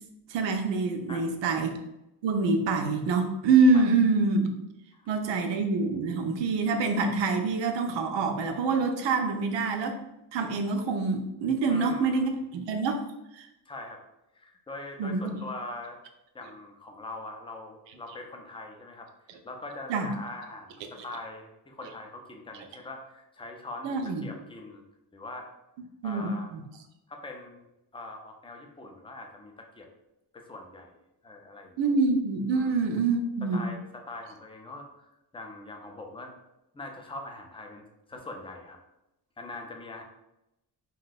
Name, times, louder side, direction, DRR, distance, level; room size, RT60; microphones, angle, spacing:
voice 1, 0.3-1.8 2.2-4.5 5.1-10.0 10.3-13.0 13.4-13.5 15.0-15.4 19.9-20.1 23.8-24.2 26.0-26.6 31.8-33.7, right 4 dB, 85° right, 5 dB, 0.6 m, -26 dB
voice 2, 11.7-12.3 13.7-14.0 14.3-16.0 16.3-19.1 19.4-24.8 25.1-25.5 26.0-26.5 27.1-27.6 27.9-29.9 30.3-30.9 31.2-31.8 32.5-32.9 33.4-36.3 36.7-38.8 39.4-40.0, left 2 dB, 15° left, 2 dB, 0.4 m, -42 dB
2.7 x 2.2 x 3.9 m, 0.90 s
cardioid pair, 100°, 43 cm